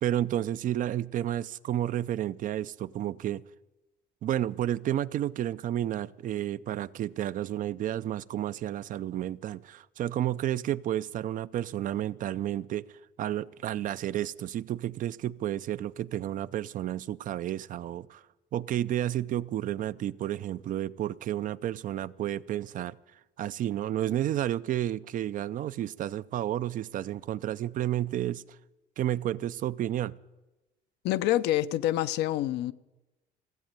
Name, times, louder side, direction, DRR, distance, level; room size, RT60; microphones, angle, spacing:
voice 1, 0.0-3.4 4.2-12.8 13.2-18.2 18.5-23.0 23.4-28.4 29.0-30.2, right 12 dB, 50° right, 0.4 m, -31 dB
voice 2, 31.0-32.7, left 14 dB, 85° left, 0.6 m, -27 dB
16.0 x 8.0 x 8.9 m
cardioid pair, 110°, 17 cm